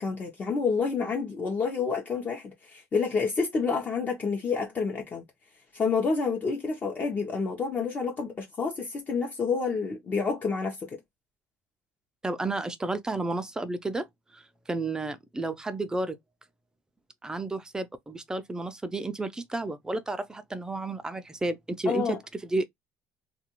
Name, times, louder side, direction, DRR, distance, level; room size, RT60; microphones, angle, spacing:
voice 1, 0.0-5.2 5.7-11.0 21.9-22.2, left 5 dB, 30° left, 0.8 m, -29 dB
voice 2, 12.2-14.1 14.3-14.4 14.7-16.2 17.2-22.2 22.4-22.6, right 2 dB, 10° right, 0.4 m, -31 dB
2.5 x 2.3 x 2.9 m
supercardioid pair, 110°, 6 cm